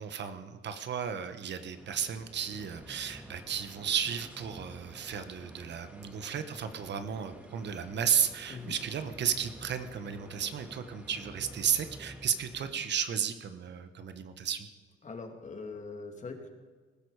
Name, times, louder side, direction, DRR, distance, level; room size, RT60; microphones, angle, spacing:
voice 1, 0.0-14.7, right 8 dB, 60° right, 10 dB, 1.3 m, -33 dB
sound 1, 1.7-13.0, right 1 dB, 5° right, 2.4 m, -50 dB
voice 2, 15.0-16.5, left 4 dB, 40° left, 4 dB, 2.5 m, -42 dB
20.5 x 12.0 x 4.9 m, 1.4 s
cardioid pair, 90°, 20 cm